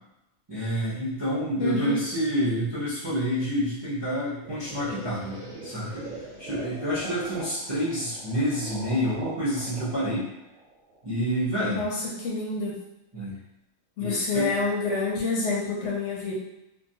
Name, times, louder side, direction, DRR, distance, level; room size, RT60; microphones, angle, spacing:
voice 1, 0.5-6.1 6.4-10.3 11.0-11.8 13.1-13.4 14.0-14.6, equal, 30° right, -10 dB, 0.5 m, -28 dB
voice 2, 1.6-2.0 11.7-12.8 14.0-16.3, left 3 dB, 65° left, -4 dB, 0.8 m, -28 dB
sound 1, 4.4-11.3, right 2 dB, 85° right, 1.1 m, -42 dB
2.4 x 2.3 x 2.7 m, 0.90 s
omnidirectional pair, 1.4 m